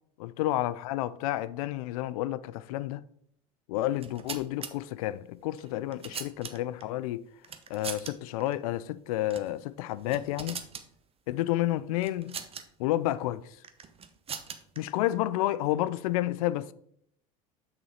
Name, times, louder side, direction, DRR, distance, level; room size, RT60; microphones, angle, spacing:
voice 1, 0.2-3.0 3.7-7.3 7.7-10.6 11.3-12.4 12.8-13.5 14.8-16.7, left 15 dB, 80° left, 0.4 m, -30 dB
sound 1, 3.9-4.7 5.6-6.8 7.4-8.1 8.4-8.5 9.2-9.5 9.9-10.9 12.0-12.6 13.6-14.8, right 6 dB, 30° right, 1.0 m, -40 dB
6.8 x 5.7 x 4.4 m
hypercardioid pair, 80°, 18 cm